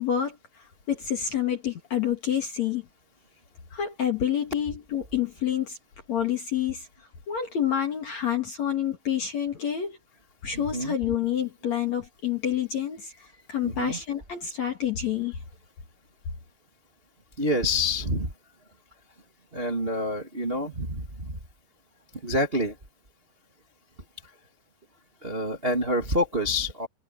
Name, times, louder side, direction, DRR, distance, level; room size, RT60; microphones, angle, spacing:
voice 1, 0.0-2.8 3.7-5.8 6.1-6.9 7.3-10.0 10.4-15.4, left 9 dB, 50° left, 2.3 m, -28 dB
voice 2, 10.5-10.9 13.6-14.0 17.4-18.3 19.5-21.4 22.2-22.7 25.2-26.9, left 1 dB, 35° right, 0.9 m, -27 dB
omnidirectional pair, 5.6 m